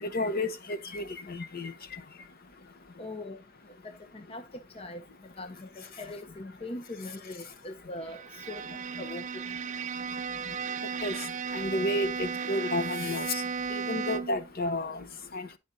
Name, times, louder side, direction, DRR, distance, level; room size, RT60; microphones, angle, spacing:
voice 1, 0.0-1.7 11.0-11.2 11.5-13.4 13.7-15.0 15.3-15.5, left 1 dB, 50° left, 1.0 m, -31 dB
voice 2, 3.0-3.4 4.1-4.4 4.7-5.0 5.4-9.4, left 2 dB, 30° left, 0.7 m, -41 dB
Bowed string instrument, 8.0-14.5, right 6 dB, 40° right, 0.4 m, -35 dB
10.5 x 5.1 x 4.0 m
head